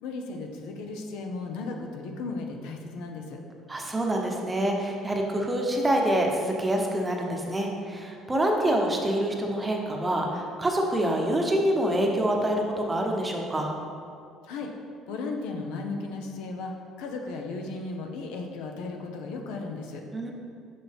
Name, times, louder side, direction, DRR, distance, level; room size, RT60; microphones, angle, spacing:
voice 1, 0.0-3.4 14.4-14.7 15.1-20.0, left 3 dB, 85° left, 3 dB, 0.8 m, -35 dB
voice 2, 3.7-13.7 20.1-20.3, right 1 dB, 15° right, 1 dB, 0.9 m, -26 dB
6.4 x 5.8 x 3.5 m, 2.4 s
cardioid pair, 120°, 0 cm